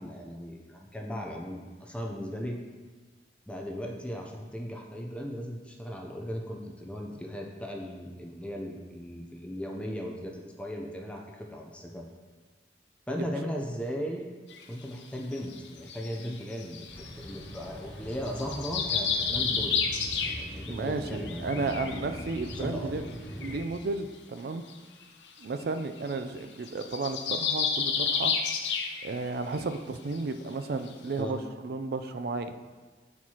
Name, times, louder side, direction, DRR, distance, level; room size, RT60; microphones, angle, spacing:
voice 1, 0.0-2.6 3.5-12.1 13.1-14.3 14.7-19.8 20.2-22.2 22.6-22.9 31.2-31.4, equal, 5° left, 0 dB, 0.5 m, -37 dB
sound 1, 14.5-14.6 15.3-17.6 18.1-20.8 21.0-22.6 23.1-23.2 23.4-23.6 24.7-24.8 25.0-25.1 25.4-25.6 26.0-26.1 26.4-29.3 29.6-29.7 30.2-30.3 30.9-31.0, left 6 dB, 85° left, 0.6 m, -31 dB
sound 2, 16.9-23.6, equal, 25° left, 1.2 m, -42 dB
voice 2, 20.7-23.0 23.4-24.6 25.4-28.3 29.0-32.6, right 3 dB, 60° right, 8 dB, 0.4 m, -33 dB
8.0 x 4.5 x 2.9 m, 1.4 s
head